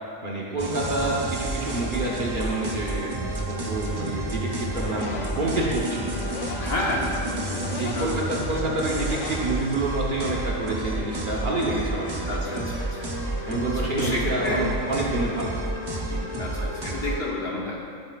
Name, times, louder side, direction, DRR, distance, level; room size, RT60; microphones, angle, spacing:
voice 1, 0.2-6.1 7.7-12.7 13.4-15.5 16.0-16.2, right 2 dB, 45° right, -4 dB, 1.1 m, -28 dB
sound 1, 0.6-17.2, right 1 dB, 25° right, 0.5 m, -30 dB
sound 2, 4.5-10.2, left 5 dB, 75° left, 0.9 m, -39 dB
voice 2, 6.6-8.2 12.3-13.0 13.4-14.7 16.4-17.8, left 1 dB, 50° left, -3 dB, 1.4 m, -31 dB
sound 3, 7.9-15.5, right 2 dB, 90° right, 1.5 m, -45 dB
11.5 x 8.5 x 2.4 m, 2.4 s
omnidirectional pair, 1.4 m